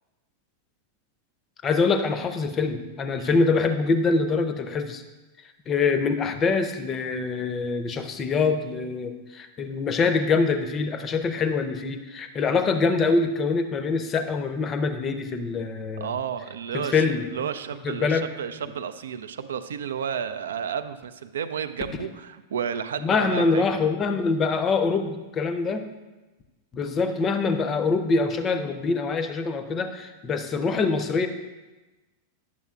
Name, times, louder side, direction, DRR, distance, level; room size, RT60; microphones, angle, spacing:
voice 1, 1.6-5.0 5.7-16.1 16.7-17.3 17.8-18.3 23.0-25.9 26.7-31.3, left 4 dB, 25° left, 9 dB, 0.6 m, -24 dB
voice 2, 16.0-23.9, right 7 dB, 65° right, 11 dB, 0.3 m, -32 dB
9.0 x 7.0 x 2.4 m, 1.1 s
figure-of-eight pair, 90°, 0 cm